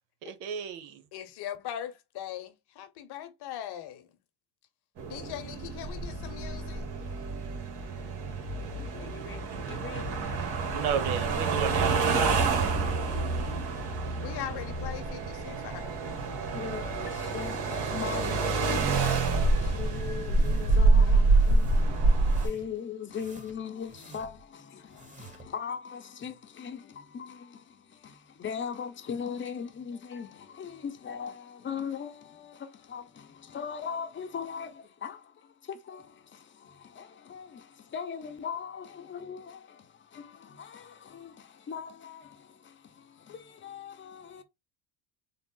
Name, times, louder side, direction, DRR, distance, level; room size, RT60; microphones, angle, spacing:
voice 1, 0.2-1.0 10.7-12.4, right 8 dB, 85° right, 0.9 m, -33 dB
voice 2, 1.1-4.2 5.1-6.9 14.2-16.0 20.7-21.4 21.7-21.8 22.4-22.6 24.9-25.1, left 11 dB, 55° left, 0.9 m, -41 dB
sound 1, 5.0-22.5, right 3 dB, 60° right, 1.5 m, -27 dB
voice 3, 8.9-10.4 16.5-44.4, left 7 dB, 25° left, 0.7 m, -40 dB
sound 2, 20.3-20.9 21.2-21.8 22.2-22.8 23.1-24.5 24.9-25.5, right 3 dB, 15° right, 1.3 m, -49 dB
3.7 x 2.0 x 3.8 m
supercardioid pair, 95°, 46 cm